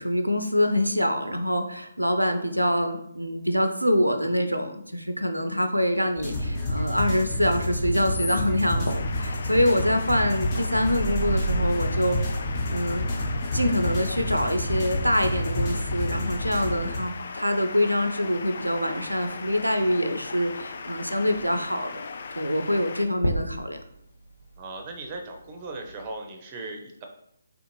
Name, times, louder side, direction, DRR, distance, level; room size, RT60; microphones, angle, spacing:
voice 1, 0.0-12.2 12.7-13.1 13.5-22.1 22.4-23.8, equal, 90° right, 8 dB, 0.4 m, -25 dB
sound 1, 6.2-17.0, left 1 dB, 25° left, 0.9 m, -28 dB
sound 2, 7.7-26.1, equal, 75° left, 0.7 m, -41 dB
sound 3, 8.9-23.1, left 4 dB, 50° left, 0.3 m, -38 dB
voice 2, 24.6-27.0, right 2 dB, 25° right, 3 dB, 0.5 m, -38 dB
3.5 x 2.5 x 2.9 m, 0.73 s
figure-of-eight pair, 145°, 0 cm